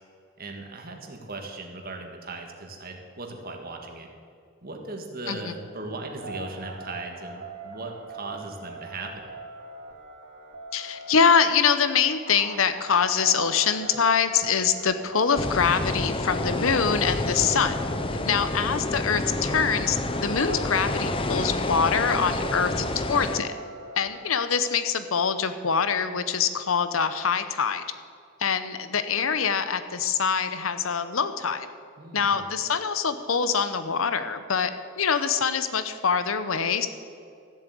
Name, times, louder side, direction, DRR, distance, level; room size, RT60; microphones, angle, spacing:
voice 1, 0.4-4.1 4.6-9.3 18.3-18.6 32.0-32.5, right 2 dB, 45° right, 3 dB, 1.8 m, -38 dB
sound 1, 6.2-24.3, right 3 dB, 65° right, 3.0 m, -42 dB
voice 2, 10.7-17.7 18.3-23.5 24.0-27.8 28.4-31.7 32.1-34.7 35.0-36.9, left 6 dB, 75° left, 11 dB, 0.9 m, -24 dB
sound 2, 15.3-23.4, left 2 dB, 25° left, 0.6 m, -29 dB
14.0 x 7.6 x 8.4 m, 2.4 s
head